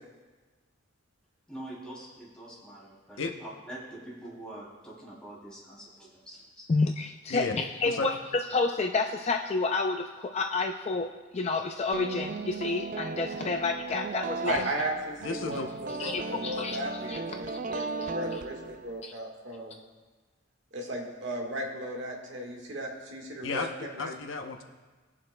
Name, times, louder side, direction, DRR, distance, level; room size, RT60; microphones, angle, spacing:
voice 1, 1.5-6.7, right 1 dB, 5° left, -7 dB, 2.9 m, -45 dB
voice 2, 6.7-11.1 11.3-14.6 16.0-16.8 17.1-17.2 17.7-18.1 19.0-19.1, left 3 dB, 30° left, 5 dB, 0.4 m, -29 dB
sound 1, 11.9-19.0, right 4 dB, 40° right, 0.4 m, -36 dB
voice 3, 14.4-19.8 20.7-24.1, right 1 dB, 60° right, 1 dB, 1.5 m, -36 dB
voice 4, 15.2-15.7 23.4-23.7 24.0-24.6, left 4 dB, 70° left, 4 dB, 0.8 m, -33 dB
22.0 x 7.3 x 2.2 m, 1.3 s
head